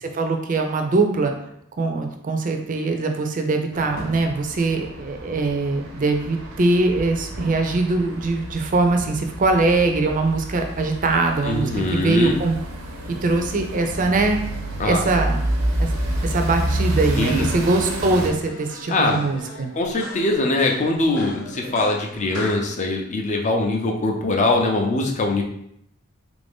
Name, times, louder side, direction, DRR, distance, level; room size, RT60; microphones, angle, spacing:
voice 1, 0.0-1.3 1.8-12.6 13.2-14.4 14.8-15.4 15.8-15.9 16.2-19.7, right 3 dB, 40° right, 4 dB, 0.5 m, -22 dB
sound 1, 3.7-18.3, right 1 dB, 85° right, 0.7 m, -29 dB
voice 2, 11.4-12.4 14.8-15.0 17.2-17.5 18.9-19.2 19.7-25.4, left 2 dB, 35° left, 2 dB, 0.5 m, -22 dB
sound 2, 17.2-22.6, left 1 dB, 85° left, 0.8 m, -39 dB
3.3 x 2.6 x 3.5 m, 0.73 s
head